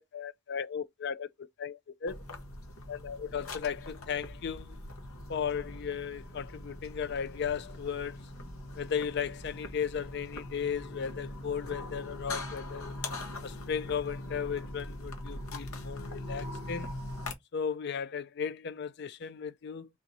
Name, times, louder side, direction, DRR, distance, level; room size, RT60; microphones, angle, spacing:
voice 1, 0.1-2.2 2.9-4.8 5.3-8.2 8.8-12.9 13.4-16.9 17.5-19.9, left 7 dB, 55° left, 0.4 m, -36 dB
sound 1, 2.1-17.3, left 2 dB, 90° left, 1.0 m, -42 dB
3.5 x 2.9 x 3.9 m
head